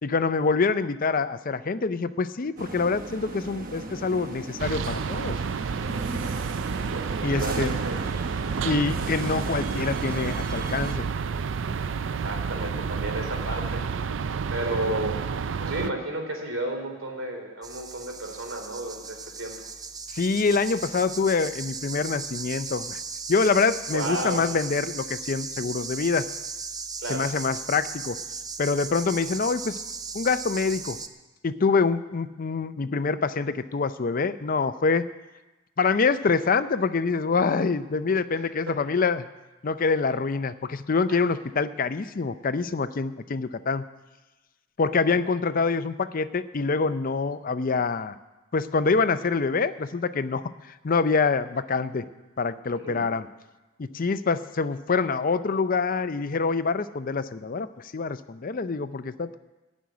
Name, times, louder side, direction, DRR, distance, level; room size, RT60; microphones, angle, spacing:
voice 1, 0.0-5.4 7.2-7.7 8.6-11.0 20.1-23.0 23.3-26.3 27.1-28.2 28.6-29.8 30.1-31.0 31.4-35.1 35.8-39.3 39.6-43.8 44.8-48.2 48.5-50.4 50.8-52.0 52.4-53.3 53.8-59.4, left 4 dB, 45° left, 12 dB, 0.5 m, -25 dB
sound 1, 2.6-10.9, right 2 dB, 45° right, 1.0 m, -37 dB
sound 2, 4.6-15.9, right 5 dB, 65° right, 0.4 m, -30 dB
voice 2, 6.7-8.0 12.2-13.8 14.5-15.1 15.6-19.7 23.9-24.4 27.0-27.3 38.3-38.7 41.1-41.2 45.0-45.2 52.8-53.0, right 1 dB, 85° right, 2 dB, 3.0 m, -33 dB
sound 3, 17.6-31.1, right 5 dB, 20° right, 0.5 m, -37 dB
14.0 x 6.3 x 9.5 m, 1.1 s
head